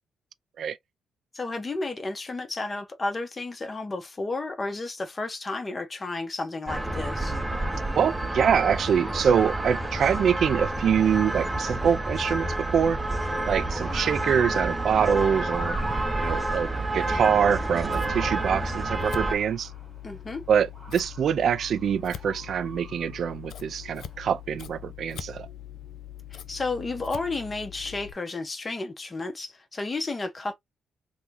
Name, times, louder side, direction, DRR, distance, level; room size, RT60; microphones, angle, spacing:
voice 1, 1.3-7.3 20.0-20.4 26.3-30.5, left 3 dB, 25° left, 0.9 m, -32 dB
sound 1, 6.7-19.4, right 2 dB, 15° right, 0.7 m, -29 dB
voice 2, 8.0-12.5 12.7-13.0 13.5-15.8 16.2-19.7 20.5-25.5, right 8 dB, 60° right, 0.3 m, -24 dB
Motor vehicle (road) / Siren, 9.1-24.7, equal, 5° left, 1.8 m, -46 dB
Scissors, 17.4-28.1, left 10 dB, 65° left, 0.4 m, -42 dB
3.5 x 2.2 x 2.9 m
cardioid pair, 90°, 0 cm